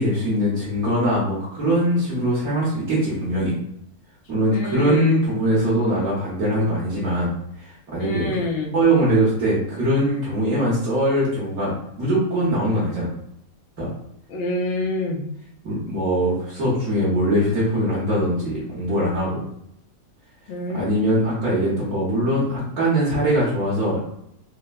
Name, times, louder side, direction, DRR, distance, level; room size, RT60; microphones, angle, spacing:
voice 1, 0.0-3.5 4.3-7.3 7.6-8.3 8.7-13.1 13.8-13.9 15.6-19.4 20.7-24.0, right 1 dB, 65° right, -7 dB, 1.4 m, -22 dB
voice 2, 4.5-5.3 8.0-8.8 14.3-15.3 20.5-20.9, left 2 dB, 65° left, 0 dB, 0.7 m, -26 dB
4.2 x 2.1 x 2.4 m, 0.75 s
omnidirectional pair, 1.8 m